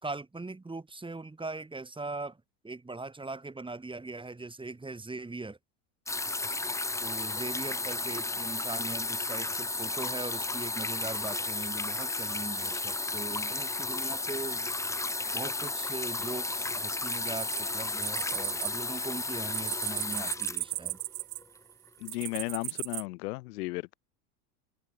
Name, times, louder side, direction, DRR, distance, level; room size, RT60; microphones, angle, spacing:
voice 1, 0.0-2.4 2.6-5.6 7.0-14.7 15.3-21.0, right 3 dB, 10° right, 5.5 m, -40 dB
sound 1, 6.1-21.4 22.3-22.4, left 3 dB, 5° left, 0.9 m, -33 dB
sound 2, 17.1-18.7 19.0-21.6 22.0-23.0, right 24 dB, 70° right, 6.3 m, -36 dB
voice 2, 22.0-23.9, left 22 dB, 70° left, 2.0 m, -35 dB
supercardioid pair, 110°, 48 cm